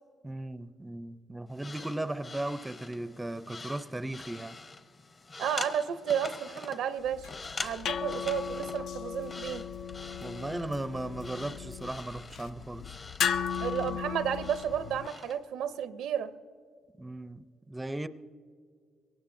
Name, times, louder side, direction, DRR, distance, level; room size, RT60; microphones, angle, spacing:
voice 1, 0.2-4.6 10.2-13.0 17.0-18.1, right 1 dB, 15° right, 0.5 m, -37 dB
sound 1, 1.5-15.4, left 3 dB, 35° left, 0.9 m, -45 dB
voice 2, 5.4-7.3 7.6-9.6 13.6-16.3, right 8 dB, 85° right, 0.6 m, -32 dB
sound 2, 7.0-15.1, left 7 dB, 70° left, 0.4 m, -36 dB
22.5 x 18.5 x 2.6 m
cardioid pair, 90°, 0 cm